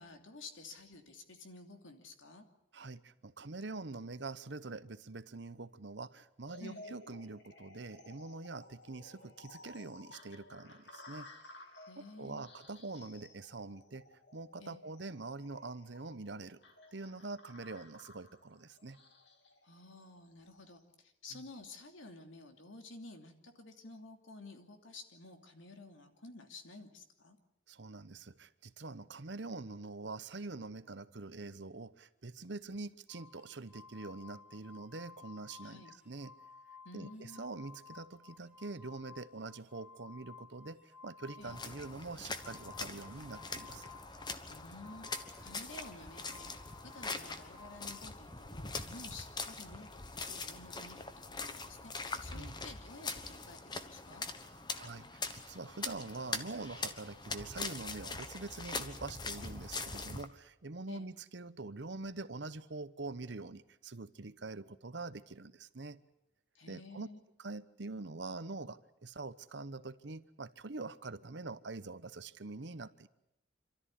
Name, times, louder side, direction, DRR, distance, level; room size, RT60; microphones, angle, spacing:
voice 1, 0.0-2.4 6.6-6.8 11.9-12.4 14.6-14.8 19.6-27.4 35.6-35.9 36.8-37.4 41.4-41.6 44.5-46.5 46.9-51.1 51.4-54.2 60.9-61.1 66.5-67.2, left 2 dB, 80° left, 5 dB, 2.8 m, -52 dB
voice 2, 2.7-11.3 12.0-14.0 14.3-16.6 16.9-19.0 21.3-21.4 27.7-36.3 36.9-43.9 52.3-52.5 54.5-66.0 66.7-67.1 67.4-73.1, right 3 dB, 60° right, 14 dB, 0.9 m, -45 dB
sound 1, 6.5-20.7, left 2 dB, 60° left, 2.9 m, -56 dB
sound 2, 33.1-48.0, left 5 dB, 5° right, 1.4 m, -56 dB
sound 3, 41.4-60.3, left 4 dB, 20° left, 1.2 m, -43 dB
27.0 x 13.5 x 10.0 m, 0.82 s
head